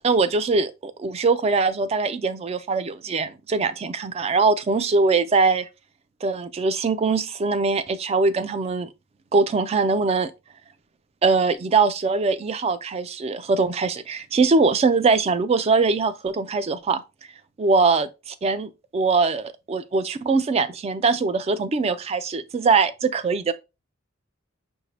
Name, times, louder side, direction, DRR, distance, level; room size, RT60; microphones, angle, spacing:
voice 1, 0.0-5.7 6.2-8.9 9.3-10.3 11.2-17.0 17.6-23.5, right 4 dB, 30° right, 0.3 m, -22 dB
5.6 x 2.7 x 3.1 m
head